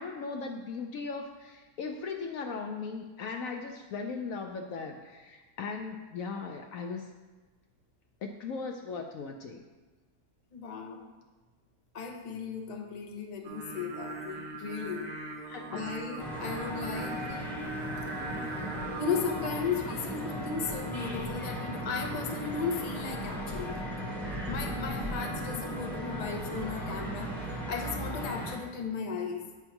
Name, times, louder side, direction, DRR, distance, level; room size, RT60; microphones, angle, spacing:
voice 1, 0.0-7.1 8.2-9.6 15.5-15.8 19.9-20.0, left 4 dB, 65° left, 3 dB, 0.9 m, -38 dB
voice 2, 10.5-11.0 11.9-15.1 15.7-17.7 19.0-23.9 24.5-27.3 27.7-29.4, left 5 dB, 35° left, 2 dB, 0.6 m, -35 dB
Singing, 13.4-19.6, right 2 dB, 70° right, 1.5 m, -40 dB
sound 1, 16.2-28.6, equal, ahead, 0.9 m, -37 dB
8.5 x 3.6 x 5.7 m, 1.3 s
omnidirectional pair, 1.7 m